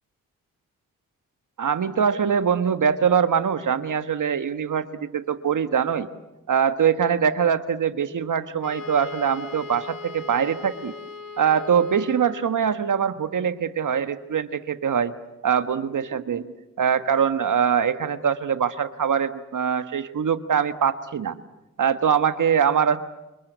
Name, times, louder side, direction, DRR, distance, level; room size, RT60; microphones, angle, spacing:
voice 1, 1.6-6.1 6.5-10.9 11.4-15.1 15.4-16.4 16.8-21.3 21.8-23.0, right 7 dB, 65° right, 11 dB, 1.5 m, -23 dB
Wind instrument woodwind instrument, 8.6-12.6, left 5 dB, 85° left, 2.7 m, -39 dB
28.5 x 25.0 x 8.1 m, 1.0 s
supercardioid pair, 40°, 33 cm